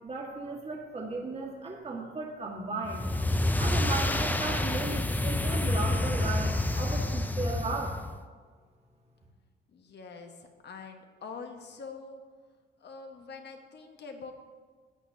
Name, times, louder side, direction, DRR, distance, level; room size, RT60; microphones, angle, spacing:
voice 1, 0.0-3.0 3.6-7.9, right 3 dB, 30° right, -2 dB, 1.7 m, -35 dB
sound 1, 2.8-8.2, left 1 dB, 10° left, 0.5 m, -28 dB
voice 2, 9.7-12.2 12.8-14.3, left 4 dB, 60° left, 4 dB, 1.3 m, -44 dB
14.0 x 8.7 x 2.8 m, 1.5 s
cardioid pair, 90°, 20 cm